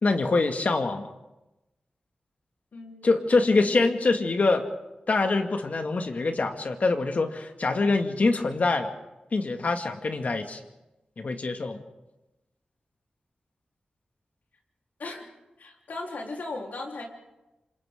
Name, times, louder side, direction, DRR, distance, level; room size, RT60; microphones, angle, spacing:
voice 1, 0.0-1.1 3.0-4.7 5.1-8.9 9.3-10.6 11.2-11.8, left 3 dB, 60° left, 5 dB, 2.2 m, -24 dB
voice 2, 2.7-3.1 15.0-15.3 15.6-17.1, left 2 dB, 85° left, 0 dB, 3.9 m, -37 dB
28.0 x 27.0 x 3.8 m, 0.99 s
cardioid pair, 65°, 3 cm